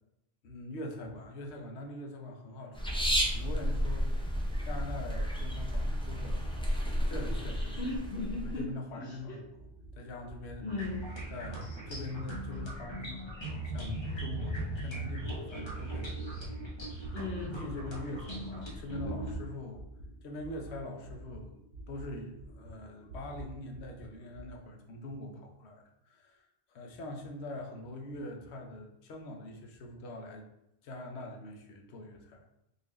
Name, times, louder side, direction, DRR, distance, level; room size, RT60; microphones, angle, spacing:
voice 1, 0.4-4.4 4.6-7.8 8.4-9.7 10.0-10.6 11.3-16.5 16.9-17.1 17.5-19.8 20.2-21.5 21.9-30.4 30.8-32.4, left 1 dB, 85° left, 2 dB, 0.9 m, -43 dB
sound 1, 2.7-8.6, equal, 10° left, 0.4 m, -32 dB
voice 2, 7.8-8.7 9.0-9.4 10.6-11.1 17.1-17.6, left 3 dB, 65° left, -4 dB, 1.1 m, -37 dB
sound 2, 9.3-16.7 17.0-24.5, right 2 dB, 75° right, 1.0 m, -49 dB
sound 3, 10.7-19.4, right 1 dB, 25° left, 0.9 m, -39 dB
3.9 x 2.7 x 3.1 m, 0.85 s
omnidirectional pair, 1.1 m